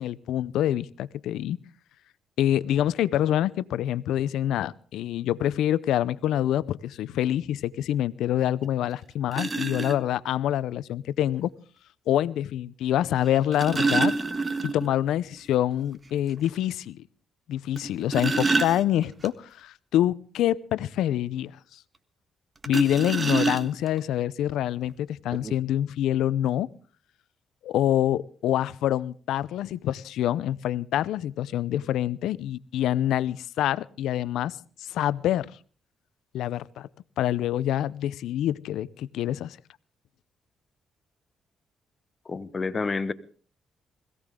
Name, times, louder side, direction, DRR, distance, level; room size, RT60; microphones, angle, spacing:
voice 1, 0.0-1.6 2.4-11.5 12.1-14.1 14.6-17.0 17.5-21.8 22.7-26.7 27.6-35.5 36.3-36.9 37.2-39.6, left 12 dB, 80° left, 0.6 m, -26 dB
sound 1, 8.6-8.7 9.3-10.0 11.3-11.4 13.2-15.0 15.3-15.4 15.8-15.9 16.4-16.5 17.8-19.3 22.6-24.0 24.9-25.0 25.3-25.5, right 3 dB, 25° right, 1.5 m, -27 dB
voice 2, 42.3-43.1, left 4 dB, 35° left, 1.2 m, -29 dB
21.5 x 16.5 x 3.8 m
cardioid pair, 90°, 0 cm